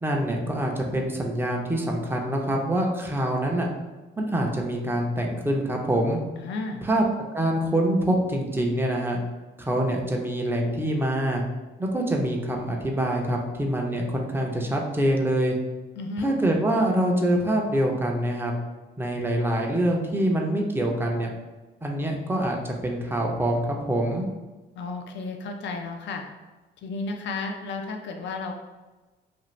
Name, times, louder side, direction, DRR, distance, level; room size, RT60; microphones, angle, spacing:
voice 1, 0.0-3.7 4.2-6.2 6.8-7.0 7.3-9.2 9.6-11.4 11.8-15.5 16.2-18.5 19.0-21.3 21.8-24.3, right 1 dB, 10° right, 0 dB, 0.5 m, -25 dB
voice 2, 6.4-6.8 16.0-16.3 24.7-26.2 26.8-28.5, left 3 dB, 65° left, 3 dB, 0.5 m, -33 dB
2.6 x 2.4 x 3.1 m, 1.2 s
cardioid pair, 90°, 20 cm